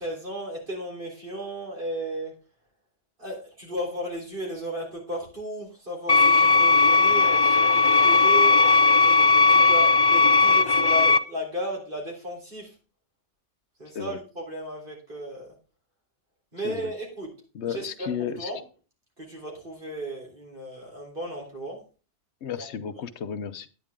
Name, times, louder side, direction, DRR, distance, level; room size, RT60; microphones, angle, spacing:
voice 1, 0.0-2.4 3.2-8.7 9.0-9.2 9.5-12.7 13.8-15.5 16.5-17.3 17.7-18.6 19.2-21.8 22.6-22.7, right 1 dB, 50° right, -1 dB, 4.0 m, -35 dB
sound 1, 6.1-11.2, left 3 dB, 40° left, 0.3 m, -18 dB
voice 2, 17.5-18.5 22.4-23.7, left 8 dB, 75° left, 13 dB, 1.0 m, -33 dB
10.0 x 9.7 x 3.6 m, 0.33 s
omnidirectional pair, 1.2 m